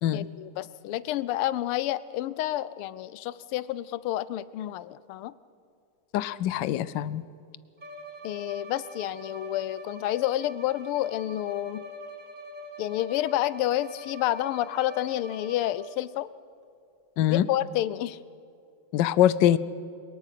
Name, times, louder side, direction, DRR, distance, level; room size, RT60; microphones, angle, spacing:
voice 1, 0.1-5.3 8.2-11.8 12.8-16.3 17.3-18.2, left 13 dB, 90° left, 17 dB, 1.6 m, -29 dB
voice 2, 6.1-7.2 17.2-17.5 18.9-19.6, left 12 dB, 70° left, 17 dB, 1.1 m, -23 dB
Bowed string instrument, 7.8-16.1, left 1 dB, 25° right, 1.3 m, -44 dB
23.0 x 21.0 x 5.8 m, 2.5 s
omnidirectional pair, 2.4 m